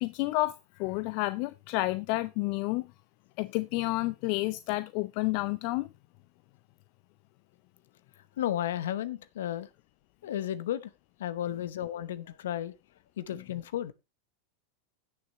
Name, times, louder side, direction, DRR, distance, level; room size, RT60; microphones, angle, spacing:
voice 1, 0.0-2.9 3.4-5.9, left 20 dB, 55° left, 0.5 m, -30 dB
voice 2, 8.4-9.7 10.2-10.9 11.2-12.7 13.2-13.9, left 11 dB, 75° left, 0.9 m, -33 dB
16.0 x 6.7 x 3.1 m
hypercardioid pair, 95°, 0 cm